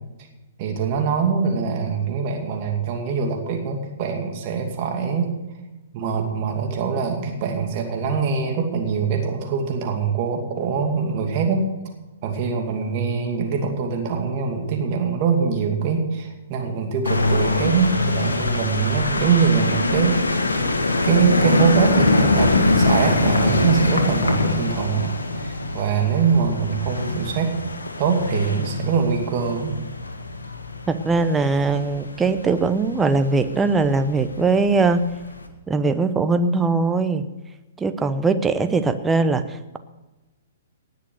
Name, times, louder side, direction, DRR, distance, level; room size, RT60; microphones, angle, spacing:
voice 1, 0.6-5.3 5.9-11.7 12.2-20.2 21.0-27.6 28.0-29.7, right 6 dB, 40° right, 3 dB, 2.5 m, -23 dB
sound 1, 17.0-35.5, left 2 dB, 80° left, 1.6 m, -23 dB
voice 2, 30.9-35.0 35.7-37.3 37.8-39.4, right 3 dB, 10° right, 10 dB, 0.8 m, -20 dB
19.0 x 6.8 x 6.6 m, 1.1 s
figure-of-eight pair, 120°, 0 cm